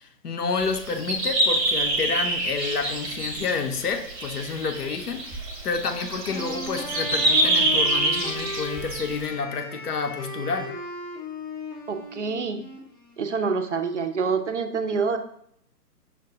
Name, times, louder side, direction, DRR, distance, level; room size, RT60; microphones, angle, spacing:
voice 1, 0.0-10.7, left 5 dB, 65° left, 6 dB, 0.7 m, -29 dB
sound 1, 0.6-9.2, right 2 dB, 20° right, 0.8 m, -26 dB
Wind instrument woodwind instrument, 5.8-13.7, left 2 dB, 15° left, 0.5 m, -37 dB
voice 2, 11.9-12.6 13.2-15.2, right 5 dB, 50° right, 7 dB, 0.4 m, -26 dB
5.9 x 2.2 x 3.8 m, 0.69 s
figure-of-eight pair, 135°, 49 cm